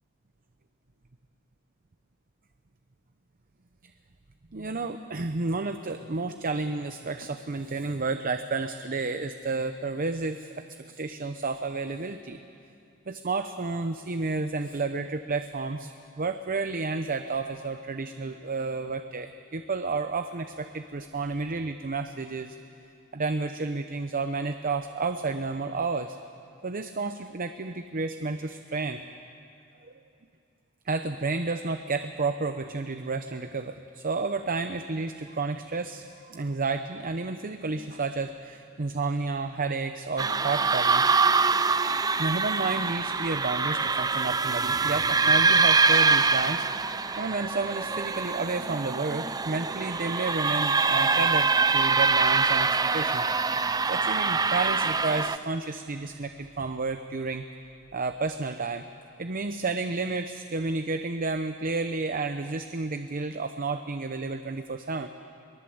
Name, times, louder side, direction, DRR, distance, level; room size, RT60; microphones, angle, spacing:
voice 1, 4.5-12.4 13.1-22.6 23.1-26.2 26.6-29.0 29.8-29.9 30.9-41.1 42.2-46.6 47.2-53.2 53.9-57.5 57.9-58.9 59.2-65.1, right 3 dB, 40° right, 8 dB, 0.8 m, -31 dB
sound 1, 40.2-55.4, right 4 dB, 20° right, 0.4 m, -24 dB
23.0 x 20.5 x 7.9 m, 2.7 s
head